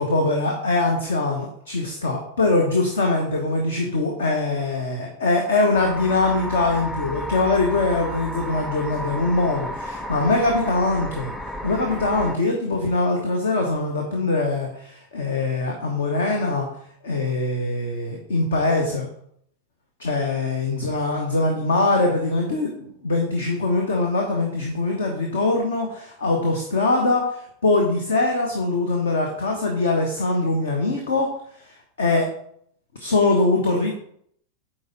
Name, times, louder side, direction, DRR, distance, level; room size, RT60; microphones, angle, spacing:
voice 1, 0.0-11.3 11.6-16.7 17.0-19.1 20.0-31.3 31.7-32.3 33.0-33.9, left 2 dB, 65° left, 2 dB, 1.1 m, -22 dB
sound 1, 5.7-12.4, equal, 10° left, 0.6 m, -33 dB
9.1 x 4.4 x 3.9 m, 0.67 s
figure-of-eight pair, 90°, 0 cm